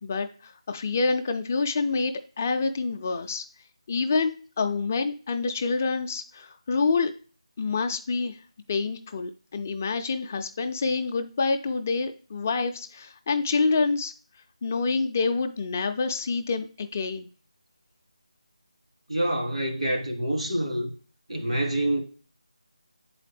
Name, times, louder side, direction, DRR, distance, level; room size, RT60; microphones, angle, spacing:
voice 1, 0.0-3.4 3.9-7.1 7.6-8.4 8.7-14.1 14.6-17.3, left 4 dB, 25° left, 0.4 m, -27 dB
voice 2, 19.1-20.9 21.3-22.0, right 1 dB, 80° right, 2.0 m, -26 dB
7.5 x 4.1 x 3.3 m
figure-of-eight pair, 165°, 3 cm